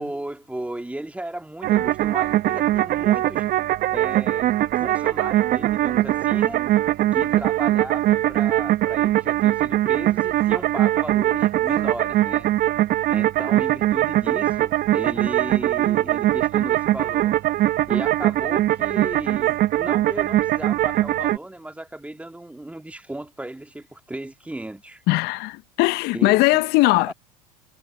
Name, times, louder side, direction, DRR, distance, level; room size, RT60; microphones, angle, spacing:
voice 1, 0.0-3.5 3.9-6.6 7.1-12.5 13.1-17.4 17.9-25.0 26.1-27.1, right 1 dB, 5° right, 2.1 m, -35 dB
sound 1, 1.6-21.4, right 14 dB, 45° right, 1.3 m, -21 dB
voice 2, 25.1-27.1, left 22 dB, 55° left, 0.8 m, -19 dB
hypercardioid pair, 80°, 20 cm